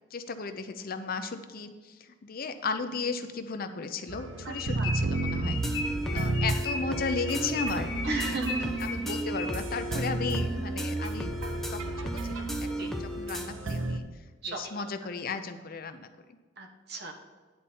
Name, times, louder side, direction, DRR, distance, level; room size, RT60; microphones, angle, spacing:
voice 1, 0.0-8.4 8.8-11.3 11.7-14.0 14.5-16.4, left 4 dB, 50° left, 8 dB, 0.6 m, -35 dB
sound 1, 4.1-14.0, right 2 dB, 85° right, 0.8 m, -33 dB
voice 2, 4.4-4.9 5.8-6.1 8.1-8.7 12.8-12.9 14.4-14.8 16.6-17.1, right 2 dB, 60° right, 3 dB, 1.3 m, -35 dB
sound 2, 4.5-9.8, left 4 dB, 85° left, 1.5 m, -37 dB
sound 3, 5.5-13.5, right 1 dB, ahead, 0.7 m, -35 dB
10.0 x 4.3 x 6.9 m, 1.4 s
head